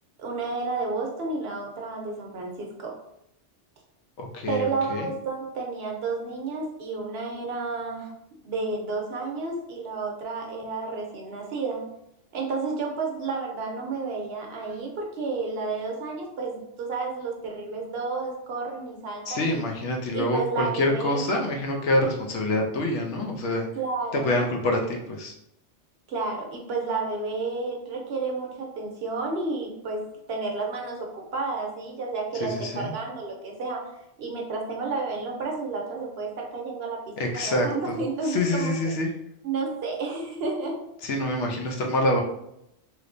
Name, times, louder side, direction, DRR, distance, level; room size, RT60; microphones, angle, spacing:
voice 1, 0.2-3.0 4.5-8.1 8.4-11.8 12.3-19.6 20.1-21.3 23.8-24.5 26.1-30.0 30.3-33.9 34.2-38.9 39.4-40.8, right 3 dB, 65° right, 1 dB, 0.8 m, -31 dB
voice 2, 4.2-5.1 19.3-23.7 24.1-25.3 32.4-32.9 37.2-39.1 41.0-42.2, left 1 dB, 80° left, 1 dB, 1.0 m, -26 dB
3.1 x 2.9 x 2.5 m, 0.80 s
omnidirectional pair, 1.2 m